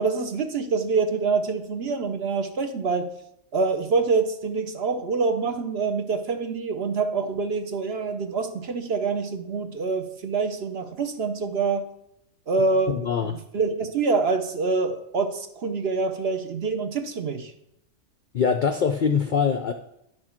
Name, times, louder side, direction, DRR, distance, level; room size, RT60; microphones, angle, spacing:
voice 1, 0.0-3.1 3.5-11.8 12.5-13.0 13.2-17.5, right 4 dB, 55° right, 7 dB, 0.9 m, -26 dB
voice 2, 12.9-13.3 18.3-19.7, left 6 dB, 65° left, 6 dB, 0.5 m, -23 dB
10.0 x 6.3 x 4.4 m, 0.78 s
omnidirectional pair, 1.4 m